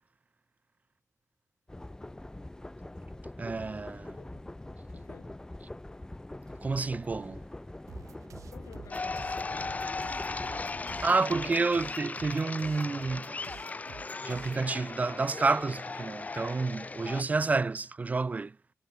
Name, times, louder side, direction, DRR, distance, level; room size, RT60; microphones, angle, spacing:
sound 1, 1.7-11.1, left 1 dB, 10° left, 5.0 m, -44 dB
voice 1, 3.4-4.2 6.6-7.4 11.0-13.4 14.2-18.6, right 3 dB, 30° right, 0.5 m, -29 dB
voice 2, 4.2-4.5 4.9-5.4 8.5-11.3, left 8 dB, 75° left, 6.3 m, -53 dB
sound 2, 7.9-14.7, right 8 dB, 90° right, 1.1 m, -50 dB
sound 3, 8.9-17.2, left 3 dB, 30° left, 0.7 m, -37 dB
wide cardioid pair, 125°, 5 cm